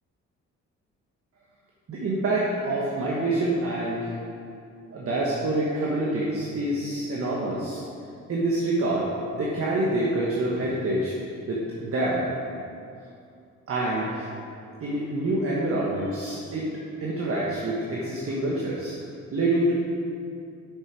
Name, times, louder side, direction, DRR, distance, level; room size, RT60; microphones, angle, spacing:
voice 1, 1.9-4.1 4.9-7.8 8.3-11.1 11.5-12.3 13.7-14.3 14.8-18.9 19.3-19.7, right 1 dB, 50° right, -5 dB, 1.4 m, -26 dB
8.1 x 6.6 x 4.7 m, 2.5 s
cardioid pair, 90°, 30 cm